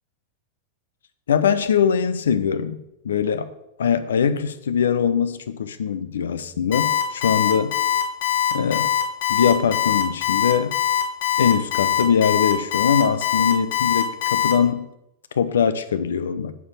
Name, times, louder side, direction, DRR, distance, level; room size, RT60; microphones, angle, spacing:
voice 1, 1.3-2.8 3.0-3.5 3.8-7.7 8.5-8.9 9.3-10.8 11.4-14.9 15.3-16.6, left 7 dB, 85° left, 12 dB, 0.8 m, -22 dB
Alarm, 6.7-14.5, left 10 dB, 70° left, 2.8 m, -22 dB
8.3 x 4.7 x 7.4 m, 0.83 s
hypercardioid pair, 110°, 0 cm